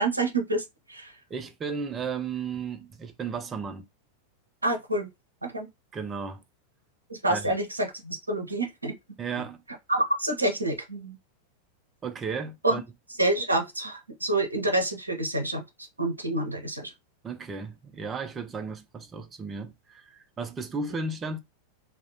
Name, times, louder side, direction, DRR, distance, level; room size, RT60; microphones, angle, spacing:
voice 1, 0.0-1.1 4.6-5.1 5.4-5.7 7.1-8.9 9.9-11.2 12.6-12.8 13.2-15.6 16.0-16.9, right 2 dB, 80° right, 0.6 m, -27 dB
voice 2, 1.3-3.9 5.9-6.4 7.3-7.6 9.2-9.6 12.0-12.8 17.2-21.4, right 5 dB, 20° right, 0.5 m, -34 dB
2.4 x 2.1 x 2.7 m
figure-of-eight pair, 90°, 0 cm